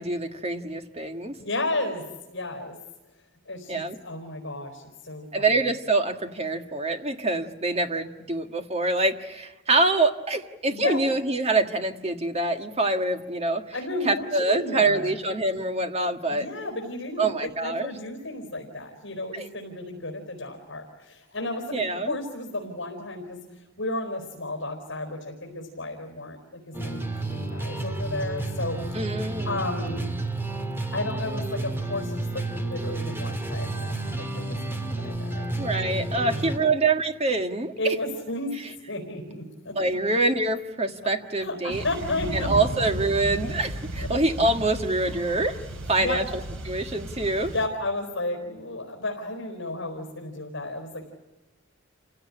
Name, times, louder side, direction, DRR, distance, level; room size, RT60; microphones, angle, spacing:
voice 1, 0.0-1.3 3.7-4.0 5.3-13.6 14.0-16.5 17.2-17.9 19.3-19.5 21.7-22.1 28.9-29.6 35.6-37.9 39.7-41.8 42.3-45.5 45.9-46.2 46.7-47.5, right 2 dB, 30° right, 6 dB, 1.7 m, -25 dB
voice 2, 1.4-2.8 3.5-5.5 10.7-11.0 13.7-15.2 16.3-28.8 29.4-30.1 30.9-35.5 36.2-36.7 37.8-38.6 38.9-39.8 41.4-42.8 44.0-44.1 45.9-46.2 47.5-51.1, left 2 dB, 60° left, 2 dB, 4.4 m, -33 dB
sound 1, 26.7-36.6, right 2 dB, 10° right, 1.9 m, -31 dB
sound 2, 41.7-47.7, right 1 dB, 75° right, 3.7 m, -34 dB
29.0 x 17.0 x 10.0 m, 1.1 s
head